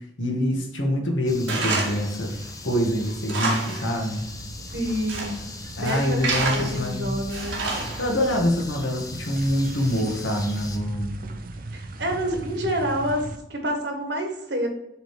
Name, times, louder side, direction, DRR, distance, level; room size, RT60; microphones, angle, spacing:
voice 1, 0.2-2.3 2.6-4.3 5.8-7.2 8.0-11.2, equal, 85° left, 1 dB, 1.7 m, -25 dB
sound 1, 1.3-10.8, left 3 dB, 20° left, 0.6 m, -40 dB
Tools, 1.5-2.1 2.5-2.6 3.1-3.9 4.2-4.3 4.9-5.4 5.8-6.8 7.3-8.2, right 3 dB, 85° right, 1.7 m, -28 dB
sound 2, 2.3-3.0 3.3-13.4, right 1 dB, 50° right, 0.6 m, -39 dB
voice 2, 4.7-5.4 5.8-7.6 11.7-13.2 13.5-14.7, equal, 65° right, 3 dB, 1.6 m, -28 dB
7.5 x 3.5 x 4.9 m, 0.82 s
head